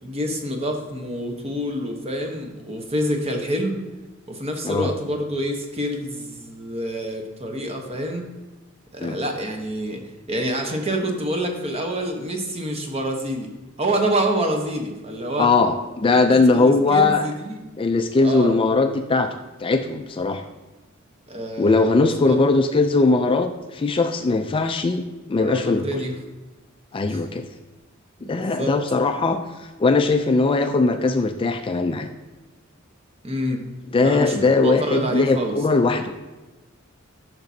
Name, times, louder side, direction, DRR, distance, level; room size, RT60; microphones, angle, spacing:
voice 1, 0.0-3.8 4.3-8.3 8.9-13.5 13.8-15.5 16.1-16.2 16.5-17.6 18.2-18.5 21.3-22.4 25.4-26.1 27.1-27.2 28.2-28.7 33.2-33.6 34.0-35.5, right 1 dB, 30° right, 3 dB, 1.0 m, -27 dB
voice 2, 15.4-17.2 17.8-20.4 21.6-25.9 26.9-27.5 28.3-32.1 33.9-36.2, left 3 dB, 25° left, 7 dB, 0.3 m, -20 dB
10.5 x 6.0 x 2.7 m, 1.2 s
head